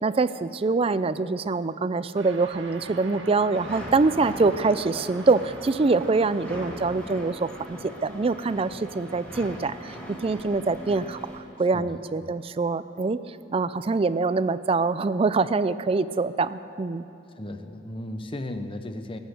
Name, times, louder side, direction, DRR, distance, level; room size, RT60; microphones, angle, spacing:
voice 1, 0.0-13.2 13.5-17.0, right 3 dB, 30° right, 15 dB, 0.4 m, -24 dB
sound 1, 2.1-11.6, right 3 dB, 80° right, 1.5 m, -47 dB
sound 2, 3.5-11.4, equal, 10° left, 2.3 m, -40 dB
voice 2, 11.7-12.3 17.4-19.2, left 1 dB, 30° left, 8 dB, 0.7 m, -36 dB
22.0 x 8.1 x 6.5 m, 2.8 s
head